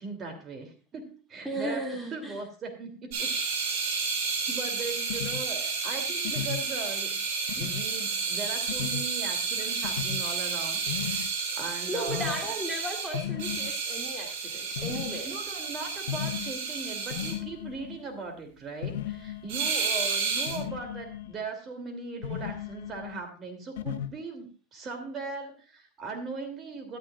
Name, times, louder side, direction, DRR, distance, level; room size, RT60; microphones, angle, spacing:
voice 1, 0.0-3.3 4.5-7.2 7.5-12.4 15.2-27.0, right 4 dB, 30° right, 4 dB, 3.0 m, -39 dB
voice 2, 1.4-2.4 11.9-15.3, right 1 dB, ahead, -1 dB, 2.4 m, -35 dB
sound 1, 3.1-17.3 19.5-20.6, right 5 dB, 65° right, 6.4 m, -31 dB
sound 2, 5.1-5.4 6.2-6.6 7.5-7.8 8.7-9.0 9.8-10.2 10.9-11.3 12.1-12.4 13.1-13.7 14.8-15.2 16.1-16.5 17.1-18.0 18.8-19.7 20.5-21.4 22.2-23.2 23.8-24.1, left 10 dB, 85° left, 0.9 m, -35 dB
13.5 x 12.5 x 2.5 m, 0.35 s
supercardioid pair, 130°, 0 cm